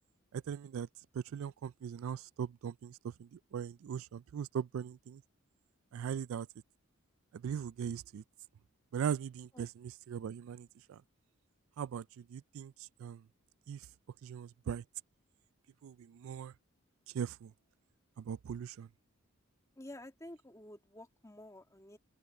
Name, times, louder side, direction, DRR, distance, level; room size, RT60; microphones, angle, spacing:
voice 1, 0.3-0.9 1.1-5.2 5.9-6.5 7.3-8.2 8.9-11.0 11.8-12.7 13.0-13.2 13.7-13.8 14.2-14.8 15.8-16.5 17.1-17.5 18.2-18.9, right 8 dB, 70° right, 0.3 m, -39 dB
voice 2, 19.8-22.0, left 1 dB, 15° left, 2.1 m, -51 dB
head